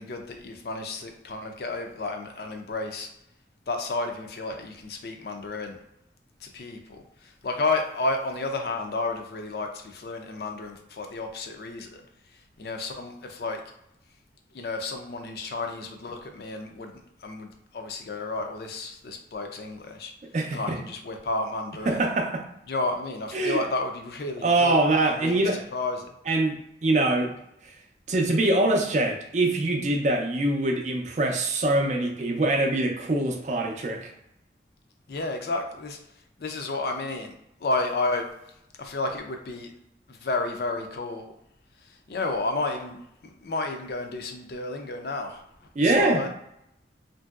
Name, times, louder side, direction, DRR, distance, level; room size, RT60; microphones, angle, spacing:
voice 1, 0.0-3.1 3.7-5.8 6.4-12.0 12.6-13.6 14.5-20.1 20.5-22.0 22.7-26.1 35.1-36.0 36.4-37.3 37.6-38.3 38.8-39.7 40.1-41.3 42.1-45.4 45.8-46.3, left 3 dB, 60° left, 4 dB, 0.4 m, -31 dB
voice 2, 20.3-20.8 21.9-22.4 23.3-23.6 24.4-25.6 26.3-26.6 26.8-27.4 28.1-34.1 45.8-46.2, right 2 dB, 40° right, 2 dB, 0.4 m, -23 dB
2.9 x 2.6 x 2.3 m, 0.78 s
head